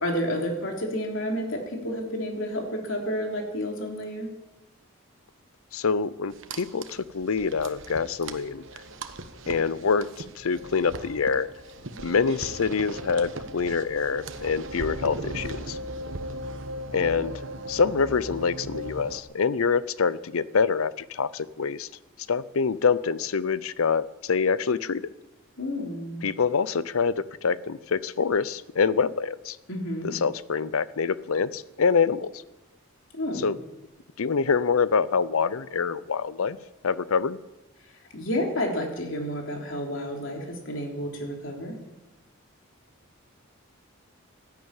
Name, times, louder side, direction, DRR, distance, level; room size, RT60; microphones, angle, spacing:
voice 1, 0.0-4.3 25.6-26.2 29.7-30.2 33.1-33.5 38.1-41.8, equal, 65° left, 1 dB, 3.2 m, -30 dB
voice 2, 5.7-8.6 9.5-11.5 12.0-15.8 16.9-17.3 17.7-21.9 22.3-25.0 26.2-29.6 30.0-32.3 33.4-33.6 34.2-36.6 36.8-37.4, left 5 dB, 80° left, 17 dB, 0.6 m, -25 dB
sound 1, 6.3-19.2, right 1 dB, 65° right, 1.2 m, -38 dB
13.0 x 11.0 x 8.9 m, 1.0 s
head